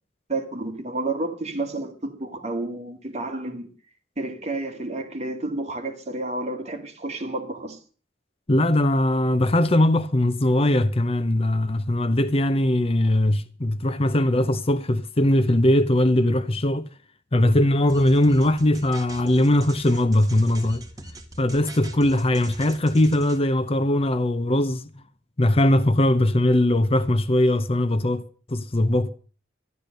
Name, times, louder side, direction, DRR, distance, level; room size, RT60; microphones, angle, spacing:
voice 1, 0.3-3.7 4.2-7.8, right 2 dB, 35° right, 2.3 m, -30 dB
voice 2, 8.5-16.9 17.3-20.8 21.4-24.9 25.4-28.2 28.5-29.1, left 1 dB, 30° left, 0.7 m, -20 dB
sound 1, 17.9-23.4, right 2 dB, 20° right, 1.7 m, -42 dB
12.0 x 12.0 x 6.6 m
head